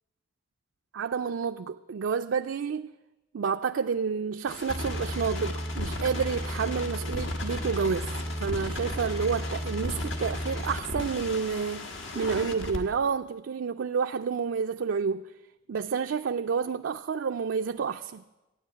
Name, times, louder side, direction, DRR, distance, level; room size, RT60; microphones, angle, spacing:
voice 1, 0.9-2.9 3.3-8.1 8.4-15.3 15.7-18.2, right 6 dB, 75° right, 0.4 m, -29 dB
sound 1, 4.5-12.8, left 1 dB, 75° left, 1.6 m, -33 dB
13.5 x 9.7 x 8.5 m
head